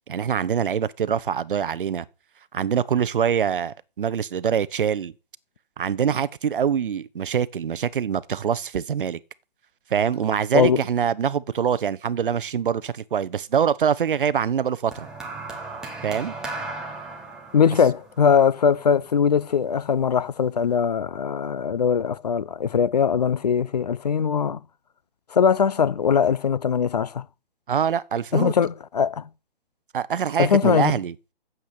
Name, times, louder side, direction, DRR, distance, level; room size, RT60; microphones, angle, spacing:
voice 1, 0.1-2.1 2.5-5.1 5.8-9.2 9.9-15.1 16.0-16.3 27.7-28.5 29.9-31.1, right 8 dB, 60° right, 0.8 m, -24 dB
sound 1, 14.9-19.3 20.3-20.5, right 3 dB, ahead, 0.9 m, -36 dB
voice 2, 17.5-24.6 25.3-27.2 28.3-29.3 30.4-30.9, left 7 dB, 45° left, 0.5 m, -21 dB
9.3 x 7.5 x 8.4 m
hypercardioid pair, 165°, 30 cm